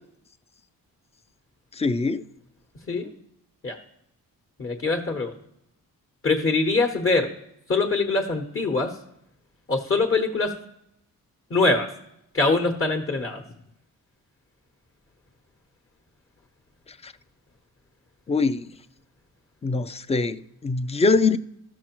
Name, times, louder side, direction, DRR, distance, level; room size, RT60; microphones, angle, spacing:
voice 1, 1.7-2.3 17.0-17.1 18.3-18.7 19.6-21.4, left 3 dB, 20° left, 0.4 m, -23 dB
voice 2, 4.6-5.3 6.2-7.3 7.7-8.9 9.7-10.5 11.5-11.9 12.3-13.4, left 3 dB, 35° left, 1.1 m, -23 dB
14.0 x 6.2 x 3.0 m
cardioid pair, 100°, 36 cm